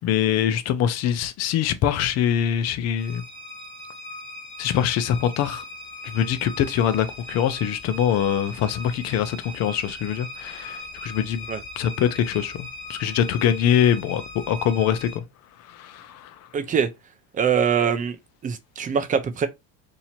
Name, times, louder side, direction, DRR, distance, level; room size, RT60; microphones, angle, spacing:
voice 1, 0.0-3.2 4.6-5.6 6.0-11.4 11.8-15.2 15.7-16.3, left 9 dB, 45° left, 0.6 m, -23 dB
sound 1, 3.0-15.2, left 1 dB, 15° left, 1.9 m, -39 dB
voice 2, 16.5-16.9 17.3-18.2 18.4-19.5, right 7 dB, 25° right, 0.5 m, -23 dB
2.8 x 2.8 x 4.2 m
supercardioid pair, 130°, 35 cm